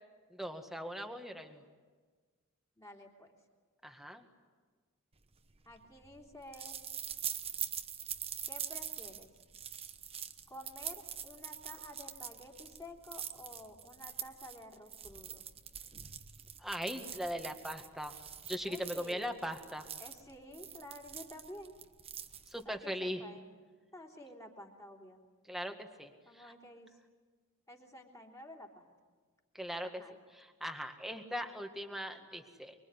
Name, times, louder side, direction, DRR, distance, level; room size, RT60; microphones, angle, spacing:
voice 1, 0.3-1.6 3.8-4.3 16.6-18.2 18.5-19.9 22.5-23.2 25.5-26.5 29.5-30.0 30.3-32.7, equal, ahead, 5 dB, 1.9 m, -40 dB
voice 2, 2.8-3.3 5.7-6.8 8.5-9.3 10.5-15.4 18.7-19.4 20.0-21.8 22.7-23.4 23.9-25.2 26.2-27.0 27.7-28.9 29.8-30.1, left 1 dB, 15° left, 0 dB, 3.5 m, -51 dB
sound 1, 5.3-22.8, right 8 dB, 25° right, 1.1 m, -44 dB
24.5 x 24.0 x 9.8 m, 1.4 s
head